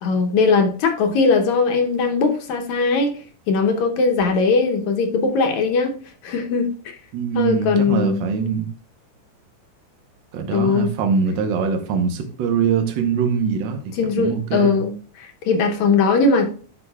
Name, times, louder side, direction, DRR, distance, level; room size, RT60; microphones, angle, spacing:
voice 1, 0.0-3.1 3.5-6.0 6.2-6.7 7.3-8.2 10.5-10.9 14.0-16.5, left 4 dB, 75° left, 2.1 m, -19 dB
voice 2, 7.1-8.7 10.3-13.8 14.2-14.8, right 6 dB, 80° right, 1.0 m, -22 dB
11.5 x 5.1 x 2.3 m
omnidirectional pair, 3.5 m